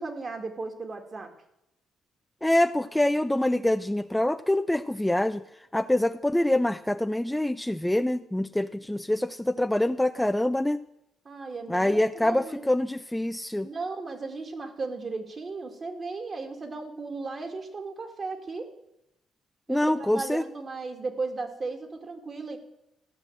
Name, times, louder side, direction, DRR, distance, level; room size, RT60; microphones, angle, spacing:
voice 1, 0.0-1.3 11.2-12.6 13.6-18.7 19.7-22.6, right 3 dB, 40° right, 5 dB, 2.0 m, -35 dB
voice 2, 2.4-5.4 5.7-10.8 11.7-13.7 19.7-20.4, left 1 dB, 5° left, 11 dB, 0.4 m, -25 dB
14.5 x 6.1 x 7.6 m, 0.83 s
cardioid pair, 90°, 0 cm